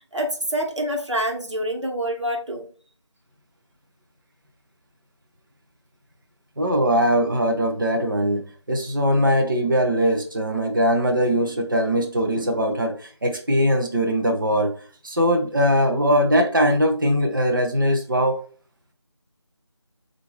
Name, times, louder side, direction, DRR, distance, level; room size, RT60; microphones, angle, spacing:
voice 1, 0.1-2.7, equal, 75° right, 1.1 m, -26 dB
voice 2, 6.6-14.7 15.0-18.4, equal, 45° right, 0.7 m, -21 dB
3.9 x 2.5 x 3.1 m
figure-of-eight pair, 175°, 15 cm